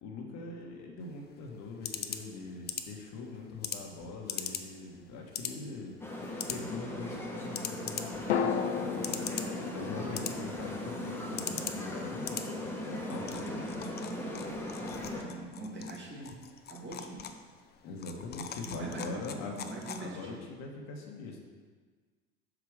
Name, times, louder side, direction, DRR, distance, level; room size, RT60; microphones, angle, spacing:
voice 1, 0.0-5.9 6.5-13.7 17.8-21.4, left 3 dB, 55° left, 1 dB, 1.3 m, -43 dB
sound 1, 1.0-20.4, left 8 dB, 30° left, 0.6 m, -43 dB
sound 2, 4.7-5.9 8.3-12.3 12.5-12.6, left 7 dB, 90° left, 0.6 m, -36 dB
sound 3, 6.0-15.2, left 1 dB, 5° left, 1.2 m, -38 dB
voice 2, 14.3-14.6 15.1-16.4 16.7-17.3 18.6-20.5, right 2 dB, 35° right, -3 dB, 1.9 m, -43 dB
5.8 x 4.9 x 4.9 m, 1.5 s
hypercardioid pair, 75°, 31 cm